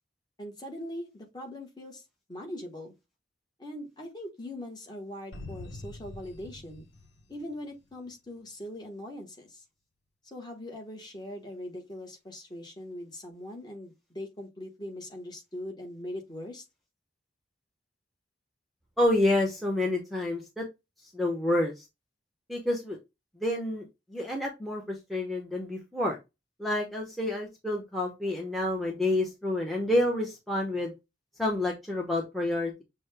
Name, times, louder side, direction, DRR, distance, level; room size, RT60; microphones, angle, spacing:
voice 1, 0.4-2.0 2.3-2.9 3.6-6.9 7.3-9.6 10.3-16.6, left 1 dB, 25° left, 1.1 m, -41 dB
sound 1, 5.3-8.1, left 2 dB, 90° left, 0.9 m, -45 dB
voice 2, 19.0-20.6 21.0-21.9 22.5-23.0 23.4-26.2 26.6-30.9 31.4-32.8, left 1 dB, ahead, 0.8 m, -29 dB
6.2 x 2.1 x 3.3 m
head